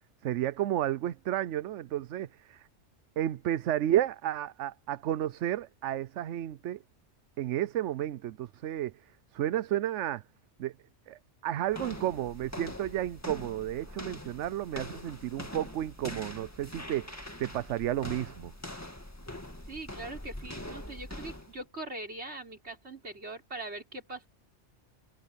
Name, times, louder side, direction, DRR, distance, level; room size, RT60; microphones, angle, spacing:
voice 1, 0.2-2.7 3.2-6.8 7.4-8.9 9.3-10.2 10.6-10.7 11.1-18.5, right 12 dB, 80° right, 1.0 m, -32 dB
sound 1, 11.7-21.6, left 1 dB, 15° left, 1.9 m, -43 dB
voice 2, 19.7-24.3, right 2 dB, 65° right, 4.7 m, -41 dB
omnidirectional pair, 1.2 m